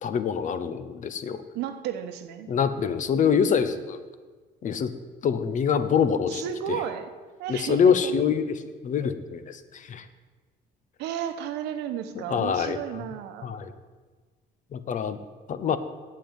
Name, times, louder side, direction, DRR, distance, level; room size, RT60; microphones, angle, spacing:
voice 1, 0.0-1.4 2.5-4.0 4.6-4.9 5.2-6.4 6.7-6.8 7.5-10.1 12.2-12.8 13.4-13.7 14.7-15.2 15.5-15.8, left 7 dB, 50° left, 11 dB, 0.9 m, -25 dB
voice 2, 1.5-2.5 6.3-7.1 7.4-8.1 11.0-13.5, right 10 dB, 90° right, 8 dB, 1.1 m, -33 dB
8.8 x 7.7 x 8.9 m, 1.4 s
cardioid pair, 110°, 17 cm